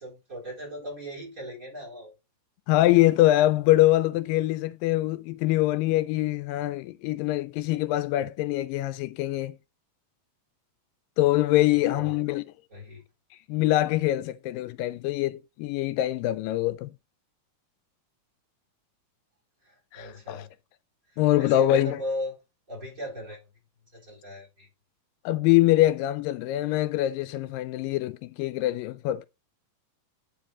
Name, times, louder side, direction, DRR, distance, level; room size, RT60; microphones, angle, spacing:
voice 1, 0.0-2.1 11.7-12.2 12.7-13.0 19.6-20.5 21.1-22.4 22.7-23.4 23.9-24.7, equal, 25° right, 4.3 m, -38 dB
voice 2, 2.7-9.6 11.2-12.4 13.5-16.9 19.9-20.5 21.2-22.0 25.3-29.3, left 15 dB, 85° left, 2.2 m, -24 dB
9.9 x 4.8 x 3.8 m
omnidirectional pair, 4.0 m